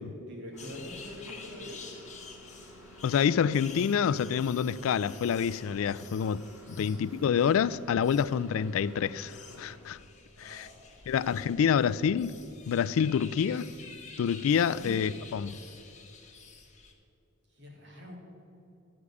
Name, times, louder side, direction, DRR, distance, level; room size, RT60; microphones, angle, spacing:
voice 1, 0.0-1.8 6.8-7.1 10.4-11.0 14.7-15.0 17.5-18.2, left 1 dB, 55° right, 2.4 m, -44 dB
Microwave oven, 0.5-9.8, equal, 10° right, 2.3 m, -52 dB
sound 1, 0.6-16.9, left 5 dB, 35° left, 1.5 m, -50 dB
voice 2, 3.0-6.4 6.7-10.0 10.4-10.7 11.1-12.4 12.7-13.7 14.2-15.6, left 7 dB, 70° left, 0.3 m, -27 dB
14.0 x 4.9 x 8.3 m
head